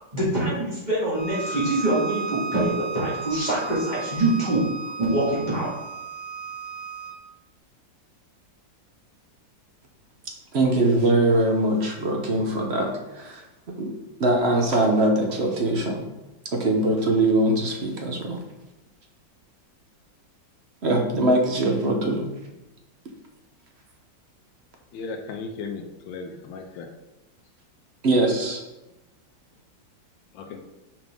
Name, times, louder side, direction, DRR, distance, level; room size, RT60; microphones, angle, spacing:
voice 1, 0.1-4.6 5.0-5.7, right 1 dB, 25° right, -9 dB, 2.2 m, -24 dB
Bowed string instrument, 1.1-7.2, right 4 dB, 25° left, 1.0 m, -34 dB
voice 2, 10.5-13.4 13.7-13.9 14.2-16.1 16.5-18.4 20.8-22.3 28.0-28.6, right 1 dB, 50° right, 2 dB, 0.8 m, -22 dB
voice 3, 24.9-26.9 30.3-30.7, left 4 dB, 85° left, 4 dB, 1.3 m, -36 dB
6.1 x 4.9 x 3.7 m, 0.99 s
omnidirectional pair, 2.0 m